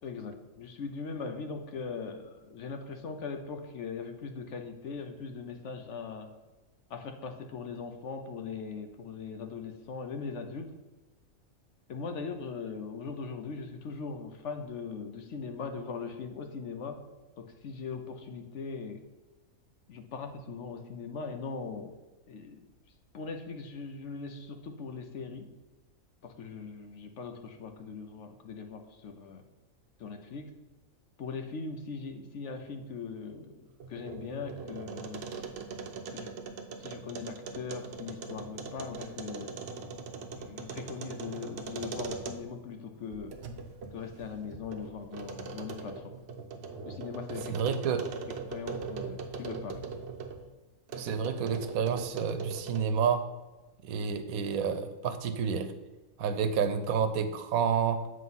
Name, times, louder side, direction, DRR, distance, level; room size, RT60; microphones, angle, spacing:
voice 1, 0.0-6.3 6.9-10.7 11.9-17.0 17.4-19.0 19.9-21.9 22.3-22.7 23.1-25.5 26.2-29.4 30.0-30.5 31.2-35.2 36.1-36.3 36.8-39.6 40.4-43.3 43.9-46.2 46.9-47.6 48.0-49.8, left 5 dB, 65° left, 6 dB, 0.9 m, -40 dB
sound 1, 33.7-42.7 43.1-50.4 50.9-53.0, right 4 dB, 60° right, 0.8 m, -41 dB
voice 2, 47.5-48.1 51.0-53.3 53.8-55.7 56.2-58.0, right 6 dB, 80° right, 9 dB, 1.1 m, -29 dB
7.6 x 3.1 x 5.4 m, 1.2 s
omnidirectional pair, 1.5 m